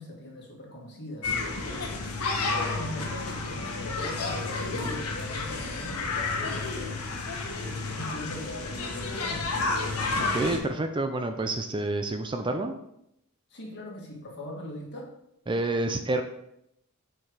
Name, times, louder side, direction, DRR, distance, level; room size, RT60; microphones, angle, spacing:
voice 1, 0.0-1.9 2.4-7.0 7.6-9.4 13.5-15.1, left 1 dB, 50° left, -1 dB, 2.0 m, -40 dB
sound 1, 1.2-10.6, left 3 dB, 80° left, 1.3 m, -31 dB
voice 2, 10.3-12.7 15.5-16.2, right 2 dB, 20° right, 7 dB, 0.4 m, -28 dB
7.4 x 4.6 x 4.8 m, 0.79 s
head